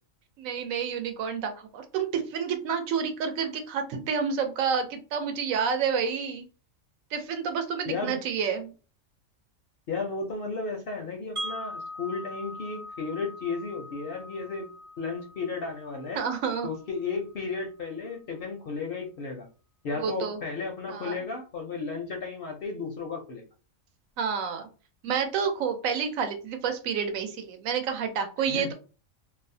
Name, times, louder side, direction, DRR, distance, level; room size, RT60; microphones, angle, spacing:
voice 1, 0.4-6.4 7.1-8.7 16.1-16.7 20.0-20.4 20.9-21.2 24.2-24.7 25.0-28.7, right 6 dB, 80° right, 6 dB, 1.0 m, -29 dB
voice 2, 7.8-8.2 9.9-14.7 15.0-16.2 16.6-19.5 19.8-23.4 28.5-28.7, left 4 dB, 60° left, 2 dB, 0.6 m, -34 dB
Wind chime, 11.4-17.3, left 1 dB, 50° right, 0.7 m, -41 dB
2.6 x 2.0 x 2.6 m, 0.35 s
omnidirectional pair, 1.4 m